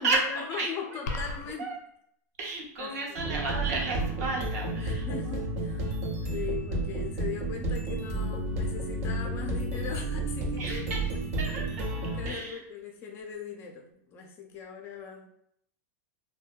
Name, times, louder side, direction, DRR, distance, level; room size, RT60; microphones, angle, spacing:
voice 1, 0.0-1.7 2.8-3.4 4.8-5.8 6.3-10.9 11.9-15.3, left 6 dB, 25° left, 1 dB, 0.4 m, -39 dB
sound 1, 1.1-1.5, left 2 dB, 85° left, 0.4 m, -33 dB
voice 2, 2.4-5.1 10.6-11.1 11.4-11.8 12.3-12.6, right 3 dB, 70° right, -1 dB, 0.8 m, -32 dB
sound 2, 3.2-12.3, right 2 dB, 40° right, 0.4 m, -31 dB
2.6 x 2.2 x 2.2 m, 0.70 s
supercardioid pair, 155°, 9 cm